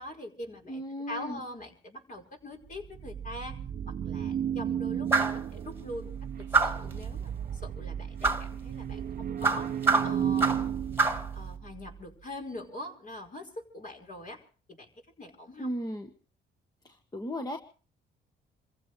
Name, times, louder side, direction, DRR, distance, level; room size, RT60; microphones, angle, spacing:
voice 1, 0.0-0.8 1.1-3.6 3.9-6.1 6.4-11.0 11.3-14.4 14.7-14.9 15.2-15.7, left 1 dB, 45° left, 2 dB, 5.1 m, -43 dB
voice 2, 0.6-1.4 15.6-16.1 16.8-17.6, equal, 20° left, 5 dB, 1.4 m, -36 dB
sound 1, 2.7-12.0, right 9 dB, 50° right, 0.7 m, -34 dB
sound 2, 5.1-5.4 6.5-6.9 8.2-8.5 9.4-10.7 11.0-11.3, right 3 dB, 10° right, 1.9 m, -25 dB
28.0 x 15.5 x 3.3 m, 0.39 s
cardioid pair, 90°, 20 cm